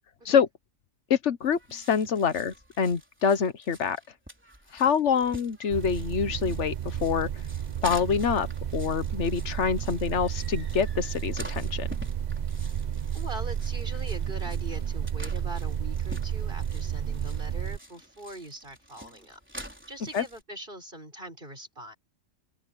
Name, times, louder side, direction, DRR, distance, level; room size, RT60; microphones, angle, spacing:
voice 1, 1.1-4.0 4.7-7.3 7.8-8.5 8.7-11.9 20.1-20.2, left 6 dB, 60° left, 1.3 m, -26 dB
sound 1, 1.4-20.4, equal, 10° right, 3.9 m, -47 dB
sound 2, 5.7-17.8, right 8 dB, 55° right, 0.4 m, -32 dB
voice 2, 13.1-19.4 19.9-22.0, right 1 dB, 40° right, 6.3 m, -42 dB
open air
omnidirectional pair, 1.4 m